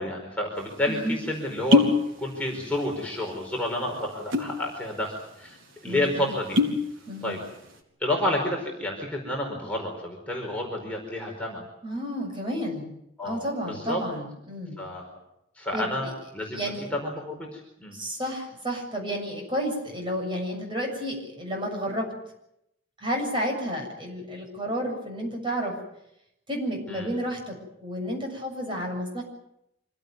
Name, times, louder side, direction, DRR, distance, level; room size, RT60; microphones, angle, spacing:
voice 1, 0.0-1.9 2.2-5.6 5.8-6.6 7.2-7.4 8.0-11.7 13.2-14.0 14.8-15.1 15.6-16.6 17.0-18.0 26.9-27.1, left 1 dB, 5° left, -1 dB, 4.6 m, -30 dB
sound 1, 0.6-0.7 1.5-2.1 2.3-3.0 3.3-3.4 4.1-4.6 5.1-5.2 5.4-5.6 6.3-6.9 7.3-7.7, left 3 dB, 80° right, 4.4 m, -22 dB
voice 2, 0.9-1.2 5.8-6.3 7.1-7.4 11.8-12.9 13.2-14.8 15.7-16.1 16.5-17.0 17.9-22.1 23.0-25.8 26.5-29.2, equal, 25° right, 1 dB, 7.2 m, -31 dB
26.5 x 17.0 x 9.4 m, 0.81 s
head